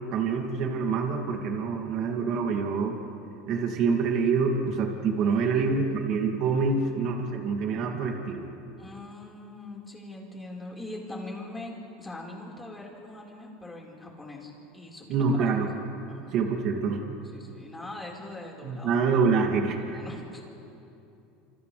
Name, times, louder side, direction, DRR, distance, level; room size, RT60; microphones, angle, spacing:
voice 1, 0.1-3.0 3.5-8.5 15.1-15.7 16.3-17.2 18.6-20.0, right 5 dB, 55° right, 1 dB, 2.7 m, -26 dB
voice 2, 5.2-6.0 6.7-7.0 8.8-15.1 15.4-15.5 16.1-16.3 17.3-19.0 19.7-20.4, left 2 dB, 10° left, -3 dB, 5.0 m, -42 dB
28.5 x 28.0 x 3.5 m, 2.8 s
supercardioid pair, 120°, 0 cm